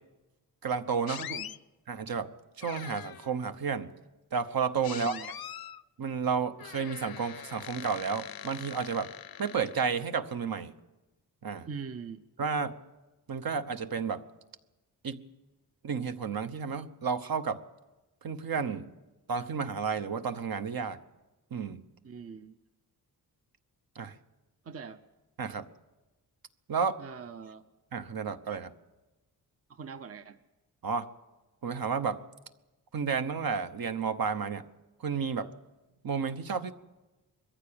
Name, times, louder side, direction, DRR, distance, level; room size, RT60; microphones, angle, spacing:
voice 1, 0.6-1.2 1.9-2.3 2.6-3.9 4.3-5.2 6.0-9.1 9.4-10.7 11.4-11.7 12.4-12.7 13.3-14.2 15.0-15.2 15.8-17.6 18.2-18.9 19.3-21.0 21.5-21.8 23.9-24.1 25.4-25.7 26.7-27.0 27.9-28.7 30.8-31.1 31.6-32.2 32.9-34.6 35.0-35.5 36.0-36.7, right 6 dB, 60° right, 9 dB, 1.1 m, -31 dB
sound 1, 1.1-1.6 2.6-3.4 4.8-5.8 6.6-10.0, left 10 dB, 65° left, 0.6 m, -43 dB
voice 2, 1.2-1.5 4.9-5.3 11.7-12.2 22.0-22.6 24.6-25.0 27.0-27.7 29.7-30.4, right 6 dB, 35° right, 10 dB, 0.7 m, -42 dB
22.0 x 15.0 x 8.8 m, 1.1 s
wide cardioid pair, 145°, 39 cm